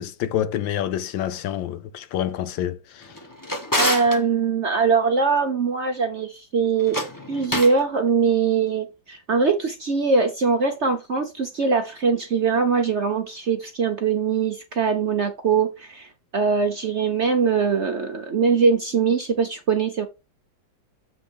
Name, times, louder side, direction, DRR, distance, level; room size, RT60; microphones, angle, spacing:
voice 1, 0.0-3.2, left 11 dB, 80° left, 1.5 m, -28 dB
Drawer open or close, 3.0-4.2 6.8-7.8, left 1 dB, 15° left, 0.8 m, -27 dB
voice 2, 3.7-7.0 7.3-20.1, right 5 dB, 55° right, 0.8 m, -22 dB
7.4 x 3.7 x 5.1 m
omnidirectional pair, 2.1 m